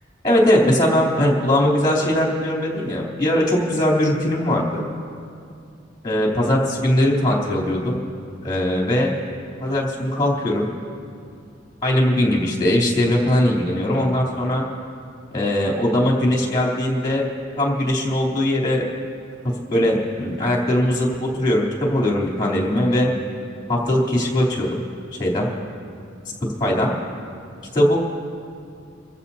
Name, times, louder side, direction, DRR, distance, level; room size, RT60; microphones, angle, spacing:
voice 1, 0.2-4.8 6.0-8.0 8.4-9.1 9.6-10.7 11.8-14.6 15.3-17.3 17.6-18.8 19.4-23.1 23.7-24.8 25.2-25.5 26.6-26.9 27.7-28.0, left 1 dB, 20° left, -2 dB, 3.2 m, -20 dB
29.0 x 14.5 x 2.8 m, 2.4 s
head